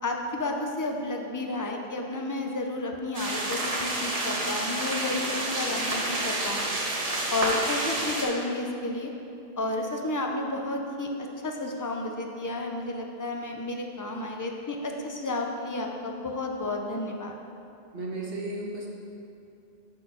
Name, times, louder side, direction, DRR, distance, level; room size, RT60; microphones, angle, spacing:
voice 1, 0.0-6.7 7.3-9.1 9.6-17.4, left 2 dB, 30° left, 2 dB, 0.4 m, -32 dB
sound 1, 3.1-8.2, right 2 dB, 40° right, 0.9 m, -29 dB
voice 2, 17.9-18.9, right 2 dB, 70° right, -2 dB, 1.2 m, -34 dB
6.2 x 3.8 x 6.0 m, 2.7 s
omnidirectional pair, 1.0 m